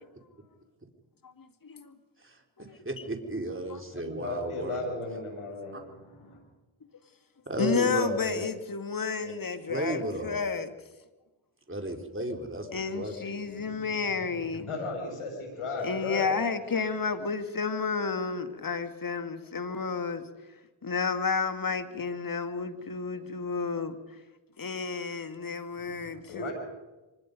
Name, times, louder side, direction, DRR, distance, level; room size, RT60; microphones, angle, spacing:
voice 1, 1.2-1.9 2.6-2.8 3.7-3.8 7.6-10.7 12.7-14.7 15.8-20.2 20.8-24.0 24.6-26.5, left 5 dB, 40° left, 9 dB, 2.3 m, -31 dB
voice 2, 2.2-4.8 5.7-5.8 7.5-8.5 9.2-9.3 9.7-10.4 11.7-12.7 12.9-13.1, right 1 dB, 25° right, 4 dB, 4.0 m, -34 dB
voice 3, 3.9-6.4 13.5-13.9 14.5-16.3 25.8-26.5, left 3 dB, 80° left, 2 dB, 6.7 m, -36 dB
24.5 x 20.5 x 5.4 m, 1.1 s
supercardioid pair, 45°, 49 cm